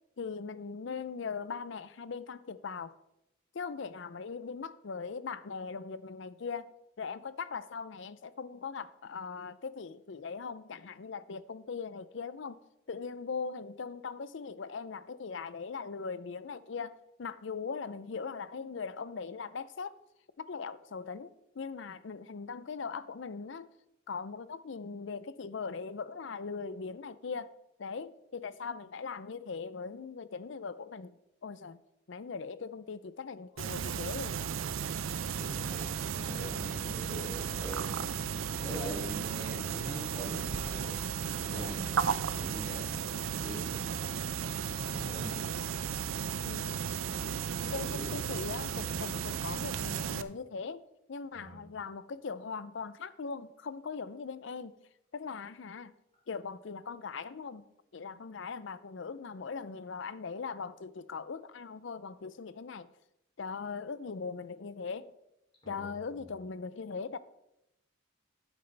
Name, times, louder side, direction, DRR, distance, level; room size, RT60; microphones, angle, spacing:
voice 1, 0.2-2.9 3.5-6.7 7.0-12.6 12.9-20.0 20.4-23.7 24.1-27.5 27.8-31.8 32.1-34.5 45.3-45.6 46.4-46.8 47.7-50.8 51.1-55.9 56.3-57.6 57.9-62.9 63.4-65.1 65.7-67.2, left 5 dB, 60° left, 0.5 m, -40 dB
sound 1, 33.6-50.2, right 7 dB, 75° right, 0.5 m, -35 dB
voice 2, 35.4-41.0 41.5-43.0 43.4-43.9 44.7-45.4 47.6-48.4 51.3-51.6 65.6-66.2, right 1 dB, 25° left, 3.0 m, -43 dB
11.5 x 9.4 x 3.3 m
head